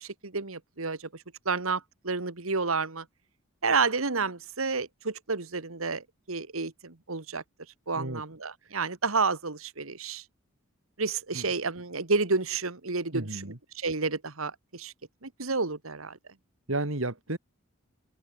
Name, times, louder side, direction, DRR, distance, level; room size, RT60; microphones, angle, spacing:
voice 1, 0.0-3.1 3.6-7.4 7.9-10.2 11.0-14.9 15.2-16.2, right 4 dB, 85° right, 1.9 m, -30 dB
voice 2, 13.1-13.6 16.7-17.4, right 2 dB, 70° right, 2.7 m, -32 dB
head